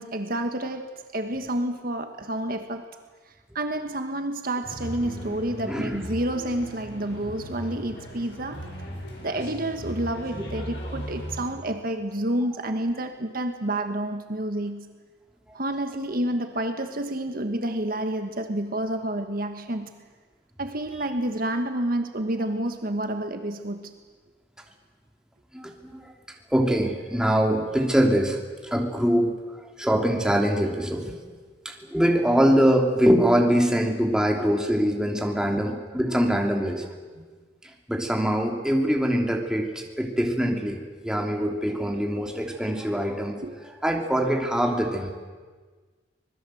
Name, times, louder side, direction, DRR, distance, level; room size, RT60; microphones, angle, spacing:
voice 1, 0.0-2.9 3.5-8.7 9.2-14.9 15.5-20.0 20.6-23.9 35.6-35.7 43.4-43.5, right 1 dB, 55° right, 7 dB, 1.5 m, -29 dB
sound 1, 4.6-11.5, equal, 70° left, 7.6 m, -37 dB
voice 2, 5.6-6.0 10.4-10.5 25.5-26.1 26.5-28.4 28.6-31.2 31.6-36.9 37.1-37.2 37.9-39.7 40.0-43.4 43.8-45.1, equal, 5° right, 1 dB, 3.1 m, -23 dB
26.0 x 20.5 x 7.8 m, 1.4 s
head